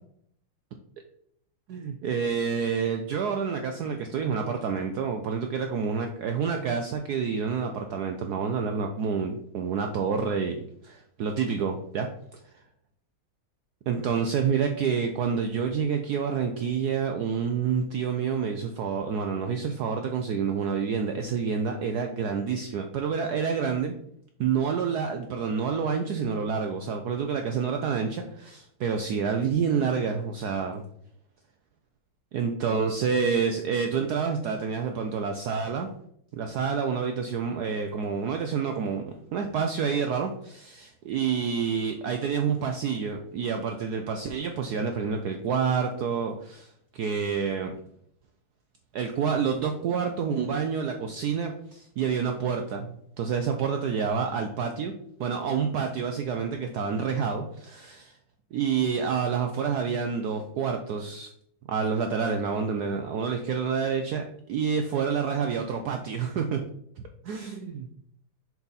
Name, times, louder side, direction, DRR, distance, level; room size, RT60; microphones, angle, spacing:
voice 1, 1.7-10.6 10.8-12.4 13.9-23.9 24.4-30.8 32.3-35.9 36.3-47.7 48.9-54.9 55.2-58.2 58.5-61.3 61.7-64.2 64.5-66.6 67.2-67.9, right 6 dB, 85° right, 5 dB, 0.8 m, -28 dB
6.9 x 4.1 x 4.0 m, 0.70 s
omnidirectional pair, 2.3 m